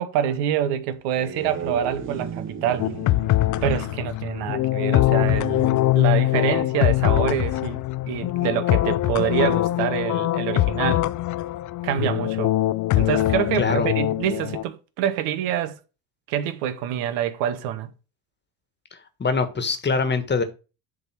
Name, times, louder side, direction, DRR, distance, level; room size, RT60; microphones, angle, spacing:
voice 1, 0.0-2.9 3.6-11.1 11.8-12.5 12.9-15.8 16.3-17.9, right 10 dB, 80° right, 1.2 m, -26 dB
sound 1, 0.9-5.2, right 6 dB, 30° right, 1.3 m, -36 dB
sound 2, 2.8-14.6, left 16 dB, 45° left, 0.5 m, -22 dB
voice 2, 13.6-13.9 19.2-20.4, left 4 dB, 25° left, 1.4 m, -23 dB
7.7 x 3.9 x 6.1 m
supercardioid pair, 90°, 42 cm